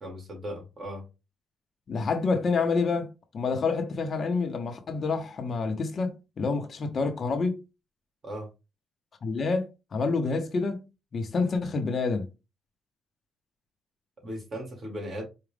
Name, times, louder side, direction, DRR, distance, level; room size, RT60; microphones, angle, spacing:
voice 1, 0.0-1.0 8.2-8.5 14.2-15.2, equal, 40° right, 2.5 m, -37 dB
voice 2, 1.9-3.1 3.3-7.6 9.2-10.9 11.1-12.3, left 4 dB, 45° left, 0.9 m, -28 dB
4.9 x 2.4 x 3.4 m
cardioid pair, 90°, 0 cm